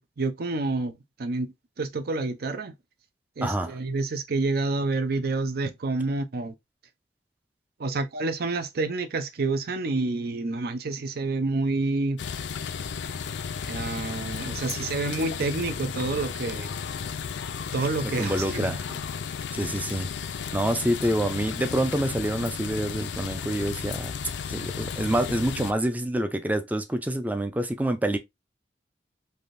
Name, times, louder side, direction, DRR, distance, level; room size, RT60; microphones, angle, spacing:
voice 1, 0.2-2.7 3.4-6.5 7.8-12.2 13.6-16.7 17.7-18.8, right 3 dB, 60° right, 0.6 m, -28 dB
voice 2, 3.4-3.7 18.0-19.0 19.5-20.1 20.5-24.1 24.5-28.2, right 1 dB, 10° right, 0.4 m, -27 dB
sound 1, 12.2-25.7, left 7 dB, 75° left, 0.4 m, -34 dB
3.4 x 2.7 x 2.5 m
head